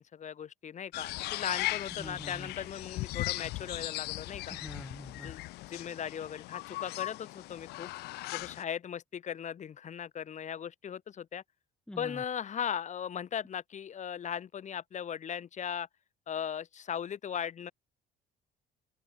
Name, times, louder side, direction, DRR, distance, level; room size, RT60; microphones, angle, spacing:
voice 1, 0.0-4.6 5.1-7.9 8.3-11.4 12.0-15.9 16.3-17.7, left 8 dB, 45° left, 2.6 m, -38 dB
sound 1, 0.9-8.6, left 20 dB, 75° left, 0.4 m, -38 dB
voice 2, 2.0-2.5 4.6-5.3 11.9-12.2, left 1 dB, 5° left, 0.5 m, -44 dB
cardioid pair, 110°, 17 cm